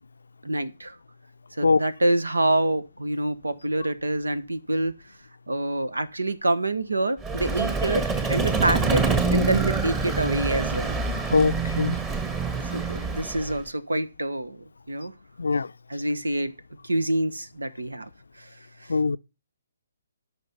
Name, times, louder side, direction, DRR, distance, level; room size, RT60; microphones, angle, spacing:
voice 1, 0.4-1.0 1.6-4.9 5.5-9.0 9.3-10.9 12.7-15.1 15.9-16.5 16.8-18.1 18.4-18.5, right 1 dB, 85° right, 1.3 m, -26 dB
Vehicle, 7.2-13.6, right 4 dB, 15° right, 1.5 m, -26 dB
voice 2, 11.3-11.9 15.4-15.7 18.9-19.2, left 4 dB, 75° left, 0.5 m, -21 dB
12.5 x 5.9 x 5.8 m
figure-of-eight pair, 135°, 0 cm